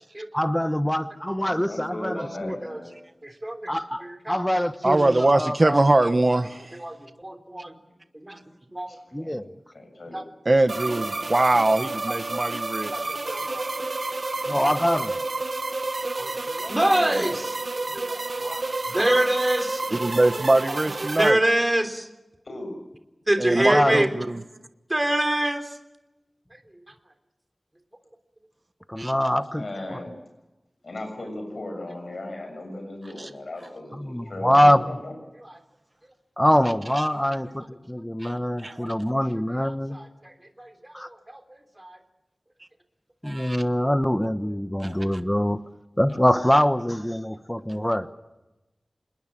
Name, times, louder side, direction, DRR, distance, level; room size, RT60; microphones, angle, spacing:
voice 1, 0.3-2.6 3.7-5.8 9.1-9.5 14.5-15.2 23.7-24.0 28.9-29.6 34.0-34.8 36.4-40.0 40.9-41.1 43.2-45.6 46.0-48.1, equal, 10° left, 10 dB, 1.1 m, -24 dB
voice 2, 1.4-2.9 8.5-8.6 8.9-9.3 9.7-10.2 17.1-17.2 22.5-22.7 29.5-30.2 30.8-35.1, left 1 dB, 70° left, 4 dB, 6.9 m, -37 dB
voice 3, 2.1-2.8 3.2-3.7 4.0-4.4 5.3-5.4 6.3-7.8 8.1-8.4 8.7-9.0 10.0-10.2 10.8-10.9 12.1-12.5 12.9-13.6 16.2-19.9 20.7-20.8 21.2-22.1 23.3-24.1 24.9-25.8 26.5-27.0 29.5-29.6 35.3-35.6 36.0-36.1 37.1-37.7 38.0-38.1 38.3-38.8 39.5-42.0, right 1 dB, 20° right, 7 dB, 3.4 m, -27 dB
voice 4, 4.8-6.7 10.5-12.9 20.0-21.4 23.4-24.0 29.0-29.1 33.2-33.3 37.0-37.1 38.2-38.3 38.6-38.8 43.2-43.6 44.8-45.1, right 2 dB, 40° right, 9 dB, 1.2 m, -22 dB
sound 1, 10.7-21.3, right 3 dB, 60° right, 1.4 m, -30 dB
27.5 x 21.0 x 7.5 m, 1.0 s
wide cardioid pair, 80°, 0 cm